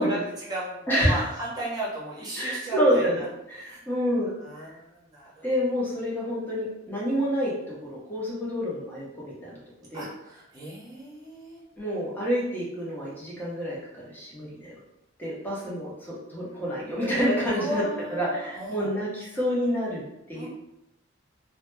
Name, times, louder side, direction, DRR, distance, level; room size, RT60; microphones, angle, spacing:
voice 1, 0.0-3.3 3.6-4.0 4.4-5.5 9.9-11.6 17.5-18.9 20.3-20.5, right 1 dB, 20° right, -7 dB, 0.8 m, -35 dB
voice 2, 0.9-1.2 2.4-3.2 3.5-4.3 5.4-9.6 9.9-10.1 11.8-14.8 15.2-17.8 18.1-20.5, equal, 10° left, -6 dB, 0.7 m, -28 dB
2.1 x 2.0 x 3.1 m, 0.86 s
head